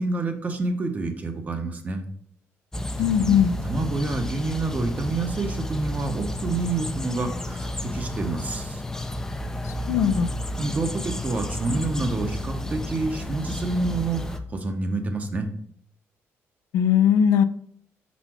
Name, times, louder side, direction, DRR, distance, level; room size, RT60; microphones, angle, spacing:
voice 1, 0.0-2.1 3.0-8.8 10.6-15.5, right 3 dB, 30° right, 6 dB, 0.9 m, -28 dB
sound 1, 2.7-14.4, left 1 dB, 10° left, 0.5 m, -31 dB
voice 2, 3.0-3.6 9.6-10.3 16.7-17.4, left 8 dB, 85° left, 11 dB, 0.4 m, -20 dB
5.7 x 4.2 x 4.4 m, 0.62 s
cardioid pair, 125°, 5 cm